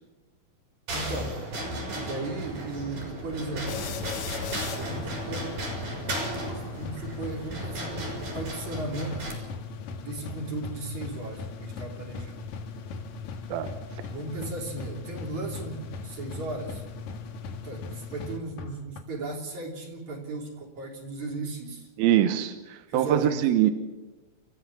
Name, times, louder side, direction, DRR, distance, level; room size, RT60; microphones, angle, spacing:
voice 1, 0.9-1.6 1.9-3.8 4.7-5.6 6.7-9.3 10.0-12.4 14.1-16.8 17.6-21.9 22.9-23.5, right 2 dB, 50° right, -1 dB, 4.5 m, -36 dB
sound 1, 0.9-9.3, right 1 dB, 70° right, 6.5 m, -35 dB
sound 2, 3.6-19.0, left 4 dB, 60° left, 2.5 m, -38 dB
voice 2, 22.0-23.7, right 11 dB, 85° right, 10 dB, 2.8 m, -23 dB
29.5 x 14.0 x 7.3 m, 1.1 s
omnidirectional pair, 4.3 m